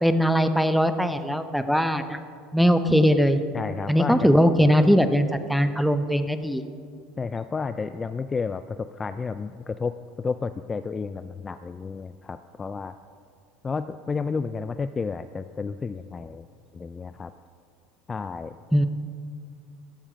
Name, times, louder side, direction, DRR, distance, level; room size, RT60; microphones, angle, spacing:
voice 1, 0.0-2.2 2.5-3.4 3.9-6.6 18.7-18.9, equal, ahead, 9 dB, 0.7 m, -20 dB
voice 2, 3.5-4.3 7.2-12.9 13.6-16.5 16.7-17.3 18.1-18.6, left 5 dB, 25° left, 11 dB, 0.3 m, -31 dB
14.0 x 7.3 x 5.1 m, 2.2 s
hypercardioid pair, 90°, 0 cm